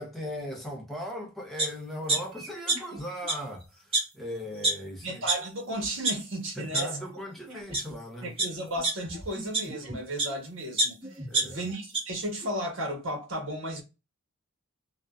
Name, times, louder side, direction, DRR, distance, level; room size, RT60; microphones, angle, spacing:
voice 1, 0.0-5.2 6.5-8.4 11.3-11.7, equal, ahead, 0.6 m, -38 dB
sound 1, 1.6-1.7 2.1-3.0 3.2-3.3 3.9-4.0 4.6-4.7 5.3-5.4 5.8-6.1 6.7-6.8 7.5-7.8 8.4-10.3 10.8-12.0 12.4-12.5, right 2 dB, 25° right, 1.1 m, -27 dB
voice 2, 5.0-7.0 8.2-13.8, right 1 dB, 60° right, 1.1 m, -34 dB
2.6 x 2.1 x 2.2 m
head